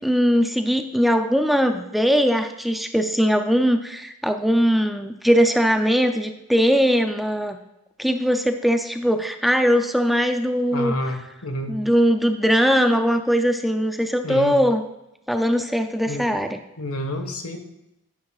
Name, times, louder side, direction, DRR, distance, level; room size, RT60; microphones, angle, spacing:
voice 1, 0.0-7.6 8.0-10.9 11.7-14.8 15.3-16.6, equal, ahead, 6 dB, 0.4 m, -20 dB
voice 2, 10.7-11.7 14.2-14.6 16.1-16.3 16.8-17.6, equal, 85° left, 5 dB, 1.4 m, -29 dB
10.5 x 10.0 x 2.4 m, 0.87 s
head